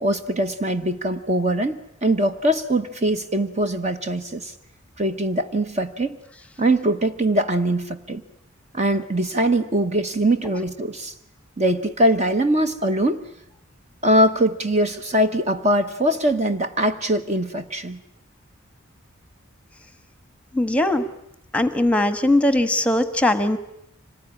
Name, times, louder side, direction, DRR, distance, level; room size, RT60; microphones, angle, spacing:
voice 1, 0.0-4.5 5.0-6.2 6.6-8.2 8.7-11.1 11.6-13.2 14.0-18.0, right 1 dB, 30° right, 8 dB, 1.0 m, -22 dB
voice 2, 20.5-21.0 21.5-23.6, left 1 dB, 5° left, 10 dB, 1.2 m, -20 dB
25.5 x 19.5 x 9.8 m, 0.80 s
head